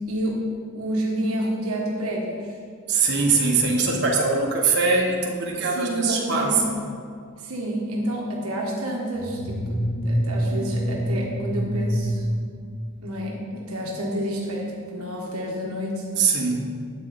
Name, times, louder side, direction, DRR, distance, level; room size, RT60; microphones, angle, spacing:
voice 1, 0.1-0.4 0.7-2.5 5.6-6.6 7.4-9.8 10.0-12.2 13.0-16.0, right 1 dB, 75° right, -2 dB, 1.4 m, -29 dB
voice 2, 2.9-6.6 10.5-10.6 16.2-16.6, right 4 dB, 50° right, -2 dB, 1.6 m, -22 dB
sound 1, 9.2-13.3, equal, 75° left, 1.3 m, -26 dB
11.5 x 8.4 x 4.3 m, 2.2 s
head